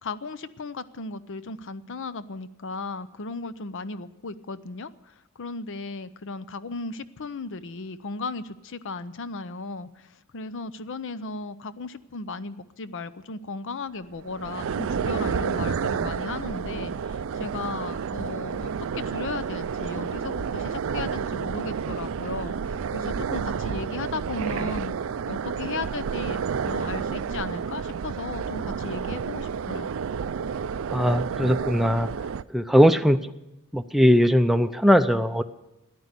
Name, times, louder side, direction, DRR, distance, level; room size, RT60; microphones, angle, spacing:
voice 1, 0.0-24.9 25.3-29.9, left 3 dB, 60° left, 14 dB, 0.7 m, -36 dB
sound 1, 14.2-32.4, right 6 dB, 65° right, 0.4 m, -30 dB
voice 2, 30.9-32.1 32.5-33.2 33.7-35.4, equal, ahead, 8 dB, 0.5 m, -19 dB
14.0 x 10.5 x 8.2 m, 0.93 s
head